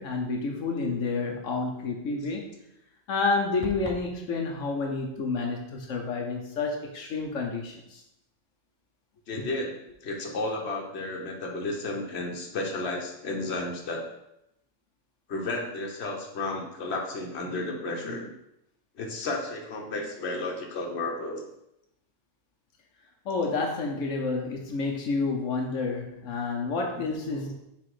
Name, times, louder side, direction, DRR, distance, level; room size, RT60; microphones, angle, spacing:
voice 1, 0.0-2.5 3.1-8.0 23.2-27.5, left 3 dB, 90° left, 1 dB, 1.2 m, -29 dB
sound 1, 3.6-4.1, right 2 dB, 20° right, 0.3 m, -38 dB
voice 2, 9.3-14.0 15.3-18.3 19.0-21.4, left 2 dB, 60° left, 1 dB, 1.3 m, -32 dB
5.8 x 3.7 x 4.8 m, 0.82 s
omnidirectional pair, 1.3 m